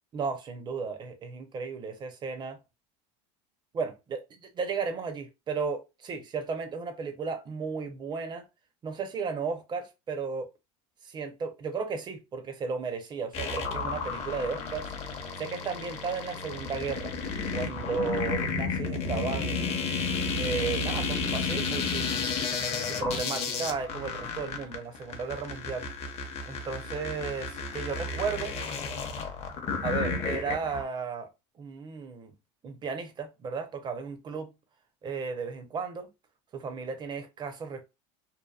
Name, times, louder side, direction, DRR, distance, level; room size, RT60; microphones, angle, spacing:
voice 1, 0.1-2.6 3.7-8.5 8.8-10.5 11.0-14.9 15.4-17.2 17.5-19.7 20.4-22.3 22.9-25.9 26.5-28.6 29.8-31.3 31.6-32.3 32.6-34.5 35.0-36.1 36.5-37.8, right 5 dB, 30° right, 0.6 m, -34 dB
sound 1, 13.3-30.8, left 4 dB, 40° left, 0.7 m, -32 dB
2.7 x 2.2 x 2.3 m
supercardioid pair, 115°, 16 cm